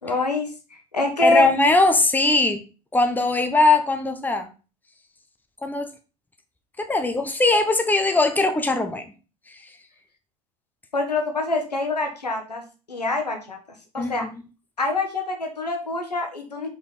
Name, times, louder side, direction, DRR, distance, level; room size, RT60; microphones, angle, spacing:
voice 1, 0.0-0.5 0.9-1.5 10.9-12.6 12.9-13.6 13.9-14.3 14.8-16.7, left 2 dB, 90° left, 3 dB, 1.4 m, -25 dB
voice 2, 1.2-2.6 2.9-4.5 5.6-5.9 6.8-9.0 14.0-14.3, left 2 dB, 10° left, 6 dB, 1.1 m, -20 dB
5.2 x 5.0 x 4.3 m, 0.33 s
figure-of-eight pair, 75°, 20 cm